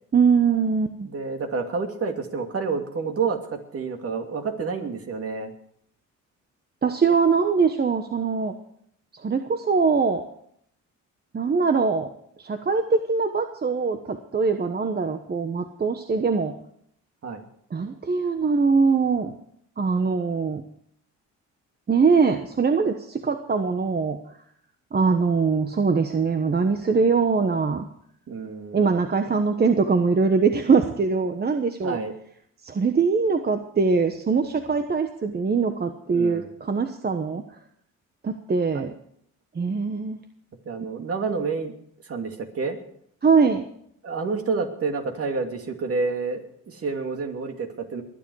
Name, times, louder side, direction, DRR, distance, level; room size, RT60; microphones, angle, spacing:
voice 1, 0.1-1.1 6.8-8.5 9.2-10.2 11.3-12.1 12.4-16.5 17.7-19.3 19.8-20.6 21.9-24.2 24.9-27.9 28.7-32.0 32.6-37.4 38.2-38.9 39.5-40.2 43.2-43.6, right 5 dB, 35° right, 6 dB, 1.2 m, -22 dB
voice 2, 1.1-5.5 17.2-17.4 28.3-28.9 31.8-32.1 36.1-36.5 38.7-38.9 40.7-41.7 42.1-42.8 44.0-48.0, right 4 dB, 50° right, 4 dB, 2.6 m, -29 dB
21.5 x 9.9 x 4.8 m, 0.68 s
cardioid pair, 90°, 30 cm